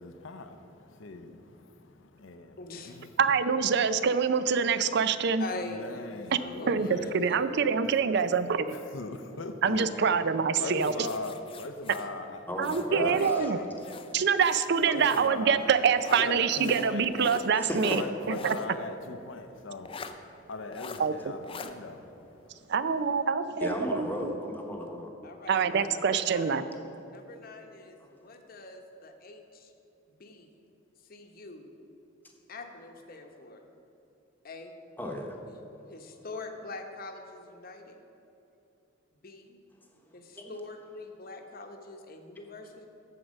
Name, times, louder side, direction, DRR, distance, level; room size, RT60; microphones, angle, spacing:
voice 1, 0.0-2.6 2.8-3.1 5.6-7.2 7.8-7.9 8.7-9.9 10.6-12.5 12.9-13.7 14.8-15.7 16.1-17.1 17.9-22.7, left 3 dB, 70° left, 8 dB, 0.6 m, -40 dB
voice 2, 2.6-3.1 5.4-7.8 9.8-10.1 13.1-14.7 15.6-16.3 25.2-26.8 27.1-29.7 30.2-30.5 31.1-31.7 32.5-33.6 34.4-34.7 35.5-35.6 35.9-38.0 39.2-39.6 40.1-42.9, left 2 dB, 50° left, 4 dB, 0.9 m, -44 dB
voice 3, 3.2-5.4 6.3-6.4 6.7-8.8 9.6-10.9 12.6-13.6 14.1-18.0 18.3-18.6 21.0-21.1 22.7-24.3 25.5-26.6, right 6 dB, 55° right, 12 dB, 0.4 m, -25 dB
sound 1, 10.8-13.4 13.8-15.3 16.0-18.7 19.0-19.1 19.8-20.1 20.7-21.0 21.4-21.7, left 3 dB, 25° left, 0.5 m, -43 dB
voice 4, 12.5-13.2 17.5-18.0 23.6-25.1 25.5-25.9 28.0-28.1 35.0-35.4 40.1-40.5, left 1 dB, 10° left, 1 dB, 1.0 m, -35 dB
14.0 x 4.7 x 6.4 m, 2.9 s
head